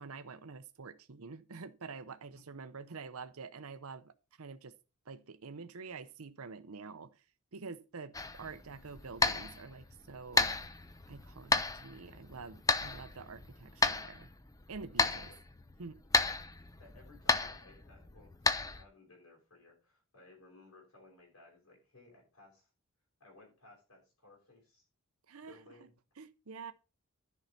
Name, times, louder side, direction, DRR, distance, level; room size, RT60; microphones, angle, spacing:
voice 1, 0.0-4.7 5.1-7.2 7.5-10.6 11.1-14.3 14.7-15.3 15.8-16.0 25.3-25.6 26.2-26.7, right 4 dB, 80° right, 0.8 m, -47 dB
sound 1, 8.1-18.8, left 3 dB, 15° left, 0.6 m, -34 dB
voice 2, 15.0-15.4 16.8-22.7 23.2-24.8 25.4-25.9, left 2 dB, 70° left, 5.8 m, -59 dB
11.0 x 5.6 x 5.7 m
head